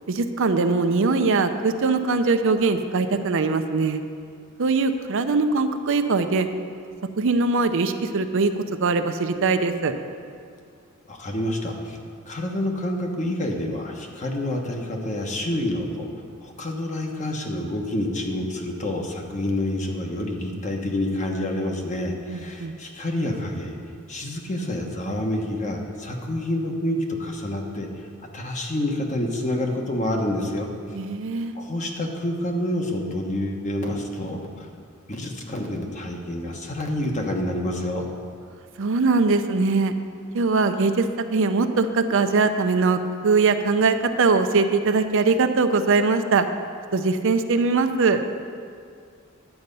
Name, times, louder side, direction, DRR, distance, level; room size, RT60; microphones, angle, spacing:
voice 1, 0.1-4.0 4.6-6.5 7.2-8.5 8.8-9.9 22.3-22.7 30.9-31.6 38.8-39.9 40.3-46.5 46.9-48.2, right 4 dB, 65° right, 8 dB, 0.6 m, -21 dB
voice 2, 11.1-12.0 12.3-16.1 16.4-23.7 24.1-28.1 28.3-31.0 31.5-34.7 35.1-38.1, left 1 dB, 35° left, 1 dB, 1.2 m, -28 dB
10.5 x 7.8 x 5.4 m, 2.2 s
head